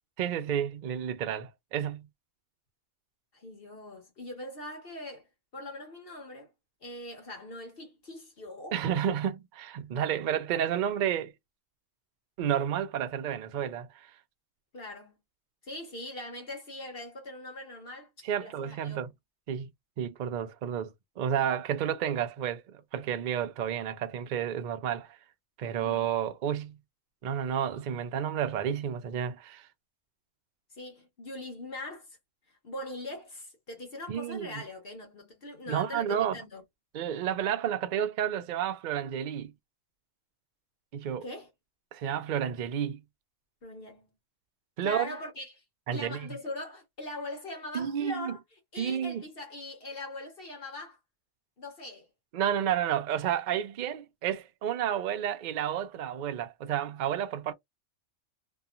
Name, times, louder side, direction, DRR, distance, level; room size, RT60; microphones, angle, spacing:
voice 1, 0.2-2.1 8.7-11.3 12.4-14.1 18.2-19.1 19.5-19.7 20.0-20.9 21.2-25.2 25.6-26.8 27.2-29.7 34.1-34.6 35.7-36.4 36.9-39.5 40.9-41.2 41.9-43.0 44.8-45.1 45.9-46.3 47.7-48.4 48.8-49.2 52.3-57.5, right 9 dB, 75° right, 0.4 m, -31 dB
voice 2, 3.3-5.3 5.5-6.5 6.8-8.8 14.7-15.2 15.6-19.1 25.8-26.1 30.7-32.2 32.5-36.6 41.2-41.5 43.6-44.1 44.8-45.6 45.9-48.4 48.7-51.0 51.6-52.1, left 2 dB, 50° left, 1.1 m, -41 dB
2.8 x 2.3 x 2.4 m
omnidirectional pair, 1.4 m